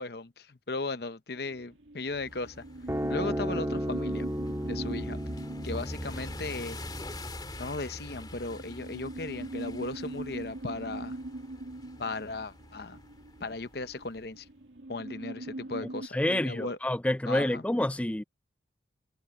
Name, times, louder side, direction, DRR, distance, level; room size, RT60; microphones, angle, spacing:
voice 1, 0.0-2.6 3.1-4.3 4.7-5.2 5.6-6.8 7.6-11.2 12.0-13.0 13.4-14.5 14.9-16.8 17.3-17.6, left 3 dB, 55° left, 0.8 m, -36 dB
sound 1, 1.3-16.1, right 2 dB, 80° right, 2.3 m, -42 dB
sound 2, 2.1-14.3, left 2 dB, 20° left, 2.9 m, -47 dB
sound 3, 2.9-9.5, equal, 15° right, 2.0 m, -35 dB
voice 2, 16.1-18.2, left 1 dB, 5° left, 0.3 m, -28 dB
head